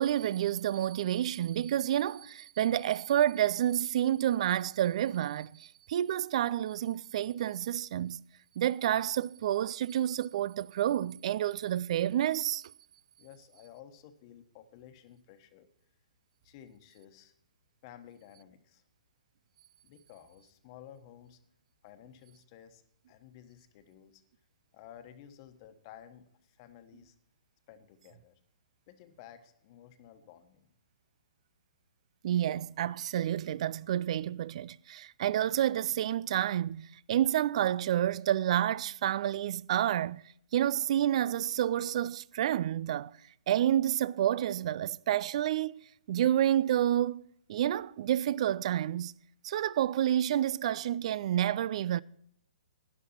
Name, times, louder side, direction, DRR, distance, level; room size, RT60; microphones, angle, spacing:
voice 1, 0.0-8.2 8.6-12.6 32.2-40.2 40.5-43.1 43.5-47.2 47.5-49.1 49.4-52.0, right 11 dB, 50° right, 0.4 m, -29 dB
voice 2, 13.2-15.7 16.4-17.3 17.8-18.8 19.8-21.4 21.8-22.8 23.1-24.2 24.7-27.1 27.7-28.4 28.9-30.7, left 10 dB, 35° left, 1.3 m, -54 dB
12.5 x 10.0 x 4.4 m
hypercardioid pair, 145°, 4 cm